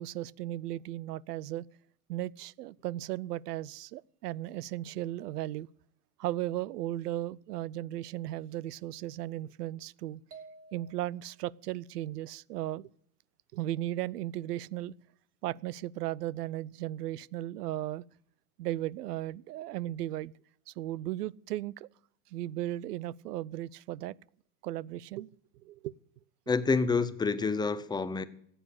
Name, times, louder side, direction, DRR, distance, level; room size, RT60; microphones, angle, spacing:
voice 1, 0.0-1.7 2.1-5.7 6.2-10.2 10.7-12.9 13.5-14.9 15.4-18.0 18.6-20.3 20.7-21.9 22.3-24.1 24.6-25.3 25.6-26.0, right 14 dB, 85° right, 0.6 m, -36 dB
sound 1, 10.3-11.5, right 4 dB, 30° right, 2.9 m, -52 dB
voice 2, 26.5-28.2, left 4 dB, 10° left, 0.7 m, -28 dB
15.0 x 8.9 x 8.3 m
supercardioid pair, 125°, 46 cm